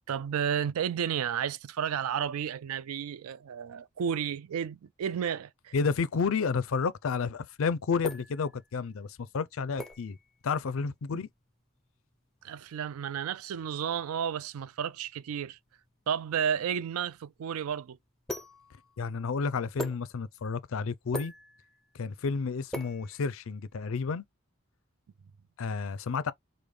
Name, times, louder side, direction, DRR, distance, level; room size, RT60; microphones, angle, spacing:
voice 1, 0.1-5.7 12.4-15.6 16.1-18.0, right 8 dB, 80° right, 0.4 m, -32 dB
voice 2, 5.7-10.2 10.4-11.3 19.0-21.3 21.9-24.2 25.6-26.3, left 5 dB, 70° left, 0.4 m, -31 dB
sound 1, 7.4-23.8, equal, ahead, 0.5 m, -44 dB
5.0 x 2.1 x 3.1 m
head